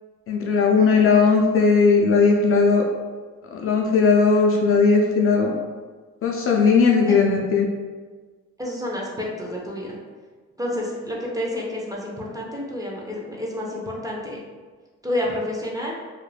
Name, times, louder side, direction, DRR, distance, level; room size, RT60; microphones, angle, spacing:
voice 1, 0.3-2.8 3.5-5.5 6.2-7.7, left 4 dB, 45° left, 0 dB, 0.4 m, -17 dB
voice 2, 8.6-10.0 10.6-14.4 15.0-15.9, left 1 dB, 10° right, -3 dB, 0.5 m, -29 dB
2.4 x 2.1 x 3.2 m, 1.4 s
cardioid pair, 90°, 30 cm